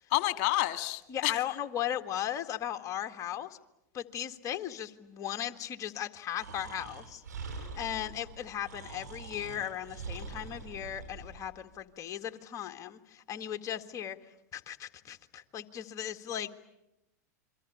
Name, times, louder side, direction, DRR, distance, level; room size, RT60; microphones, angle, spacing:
voice 1, 0.1-1.4, left 18 dB, 55° left, 10 dB, 1.9 m, -29 dB
voice 2, 1.1-3.6 3.9-14.2 14.5-16.5, left 10 dB, 35° left, 6 dB, 1.9 m, -37 dB
Breathing, 6.4-11.5, right 4 dB, 90° right, 6.2 m, -44 dB
29.0 x 23.0 x 8.7 m, 0.89 s
hypercardioid pair, 100°, 9 cm